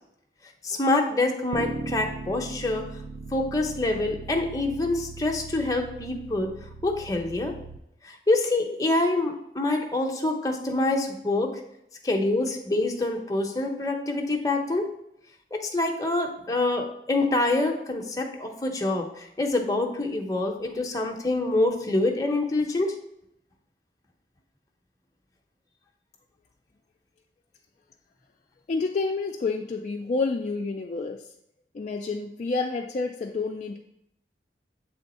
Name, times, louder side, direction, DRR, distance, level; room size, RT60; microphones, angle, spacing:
voice 1, 0.6-2.8 3.3-6.5 6.8-7.5 8.0-11.6 12.0-14.9 15.5-23.0, left 2 dB, 20° left, 2 dB, 0.7 m, -26 dB
sound 1, 1.5-7.8, right 3 dB, 70° right, 0.5 m, -39 dB
voice 2, 28.7-31.3 31.7-33.8, left 3 dB, 40° left, 2 dB, 0.3 m, -29 dB
7.6 x 3.4 x 4.2 m, 0.79 s
head